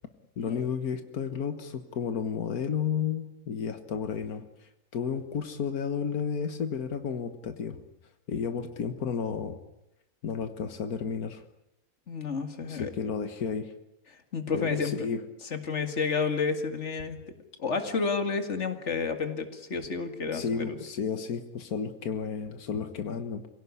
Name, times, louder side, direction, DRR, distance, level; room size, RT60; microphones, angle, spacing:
voice 1, 0.4-7.8 8.3-9.6 10.2-11.4 12.7-13.7 14.5-15.2 20.3-23.5, left 6 dB, 90° left, 9 dB, 1.8 m, -32 dB
voice 2, 12.1-12.9 14.3-14.9 15.5-17.2 17.6-20.8, left 5 dB, 50° left, 7 dB, 2.4 m, -30 dB
26.0 x 17.5 x 9.7 m, 0.87 s
omnidirectional pair, 1.5 m